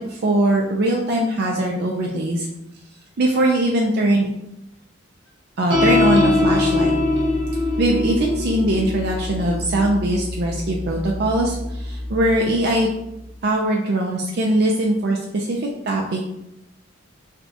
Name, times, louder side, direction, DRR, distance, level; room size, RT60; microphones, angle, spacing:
voice 1, 0.0-2.5 3.2-4.3 5.6-6.9 7.8-12.9 13.4-16.2, right 1 dB, 55° right, 0 dB, 0.4 m, -21 dB
sound 1, 5.7-12.4, left 2 dB, 80° right, 1.2 m, -23 dB
5.8 x 2.3 x 2.7 m, 0.86 s
head